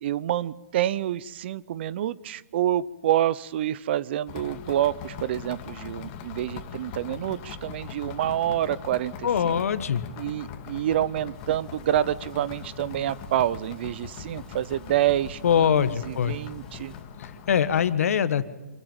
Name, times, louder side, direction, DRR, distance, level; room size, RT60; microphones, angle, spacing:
voice 1, 0.0-9.6 10.2-16.9, right 12 dB, 40° right, 20 dB, 0.6 m, -27 dB
sound 1, 4.3-17.9, left 7 dB, 30° left, 2.0 m, -41 dB
voice 2, 9.2-10.0 15.4-16.3 17.2-18.5, left 8 dB, 60° left, 12 dB, 1.4 m, -23 dB
sound 2, 11.3-17.0, left 2 dB, 5° left, 5.5 m, -52 dB
27.0 x 12.5 x 9.1 m, 1.1 s
hypercardioid pair, 150°, 9 cm